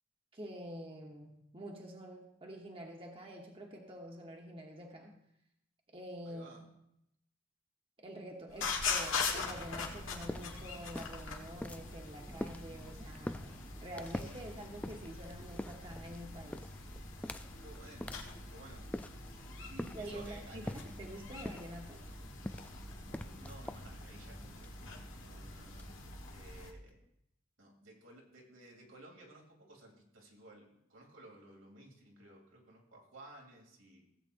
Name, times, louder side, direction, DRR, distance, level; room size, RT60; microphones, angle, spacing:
voice 1, 0.3-5.1 5.9-6.6 8.0-16.7 19.9-22.0, equal, 30° right, 1 dB, 1.1 m, -47 dB
voice 2, 6.2-6.7 17.6-20.8 23.1-25.9 26.3-27.0 27.6-34.1, right 1 dB, 85° right, -1 dB, 3.0 m, -56 dB
sound 1, 8.5-26.7, left 4 dB, 80° left, 1.5 m, -43 dB
sound 2, 9.4-26.9, left 1 dB, 5° left, 0.3 m, -47 dB
17.0 x 8.1 x 2.6 m, 0.79 s
head